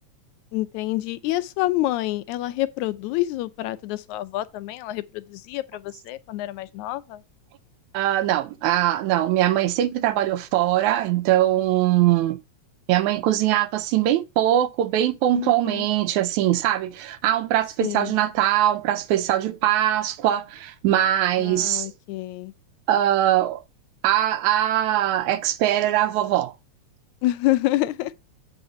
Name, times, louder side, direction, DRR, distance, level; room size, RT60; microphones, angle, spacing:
voice 1, 0.5-7.2 15.3-15.9 17.8-18.2 21.4-22.5 27.2-28.1, left 16 dB, 85° left, 2.0 m, -27 dB
voice 2, 7.9-12.4 12.9-21.9 22.9-23.6 24.0-26.5, right 12 dB, 85° right, 2.1 m, -21 dB
8.0 x 3.8 x 5.4 m
omnidirectional pair, 3.3 m